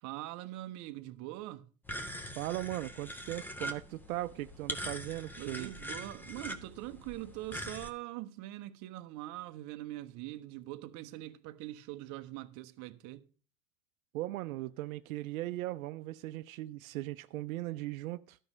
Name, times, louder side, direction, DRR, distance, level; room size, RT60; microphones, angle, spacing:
voice 1, 0.0-1.7 5.4-13.3, right 16 dB, 45° right, 0.9 m, -43 dB
sound 1, 1.8-7.9, equal, 5° left, 0.8 m, -42 dB
voice 2, 2.4-5.7 14.1-18.4, right 17 dB, 80° right, 0.6 m, -38 dB
12.0 x 5.5 x 6.0 m
supercardioid pair, 115°, 41 cm